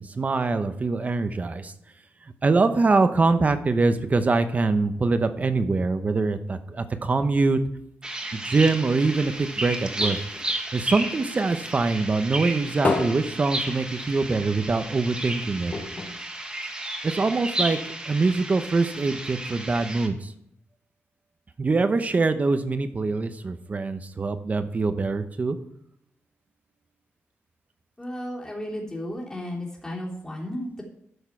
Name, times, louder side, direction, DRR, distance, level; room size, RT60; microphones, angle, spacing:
voice 1, 0.0-1.7 2.2-7.6 8.3-10.2 10.7-15.7 17.0-17.8 18.1-20.3 21.6-25.6, right 3 dB, 35° right, 10 dB, 0.9 m, -24 dB
sound 1, 8.0-20.1, right 1 dB, 20° right, 1.7 m, -33 dB
sound 2, 9.1-11.7 12.1-14.4 14.7-14.8 15.1-15.2 15.7-17.2 17.8-17.9, left 3 dB, 40° left, 1.7 m, -32 dB
voice 2, 28.0-30.8, left 1 dB, 15° left, -3 dB, 2.9 m, -34 dB
12.0 x 6.5 x 4.6 m, 0.75 s
cardioid pair, 100°, 5 cm